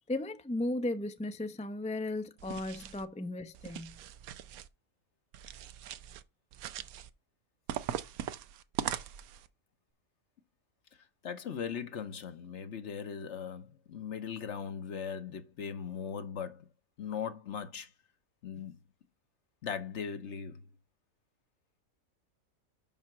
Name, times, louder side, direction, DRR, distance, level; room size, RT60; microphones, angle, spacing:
voice 1, 0.1-4.0, left 2 dB, 10° left, 0.4 m, -35 dB
sound 1, 2.4-3.1 3.5-4.7 5.3-6.2 6.5-7.1 7.7-9.5, right 10 dB, 90° right, 1.1 m, -40 dB
voice 2, 11.2-16.6 17.0-17.9 18.4-18.8 19.6-20.6, left 7 dB, 60° left, 1.1 m, -39 dB
5.7 x 5.7 x 5.9 m
omnidirectional pair, 1.5 m